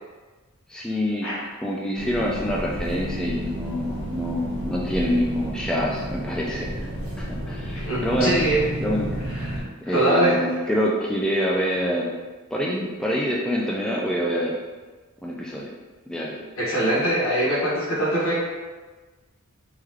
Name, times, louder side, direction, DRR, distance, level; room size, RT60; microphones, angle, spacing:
voice 1, 0.7-1.3 1.6-6.9 7.2-8.3 8.8-9.1 9.9-12.1 12.5-14.6 15.2-15.7 16.1-16.4, equal, 5° left, -4 dB, 0.3 m, -26 dB
sound 1, 2.0-9.6, equal, 55° right, 1.0 m, -31 dB
voice 2, 7.7-8.6 9.3-10.5 16.6-18.4, right 1 dB, 65° left, -6 dB, 1.3 m, -23 dB
3.6 x 3.2 x 3.0 m, 1.3 s
head